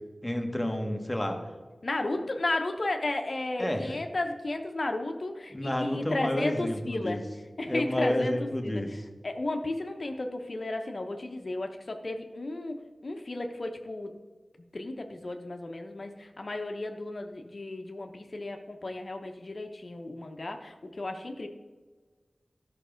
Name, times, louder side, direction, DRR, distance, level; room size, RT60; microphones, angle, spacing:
voice 1, 0.2-1.4 3.6-3.9 5.5-7.2 7.6-9.0, left 1 dB, 15° left, 4 dB, 1.4 m, -30 dB
voice 2, 1.8-7.2 7.6-8.8 9.2-14.1 14.7-21.5, left 2 dB, 50° left, 4 dB, 0.9 m, -34 dB
13.0 x 6.0 x 5.1 m, 1.4 s
wide cardioid pair, 80°, 0 cm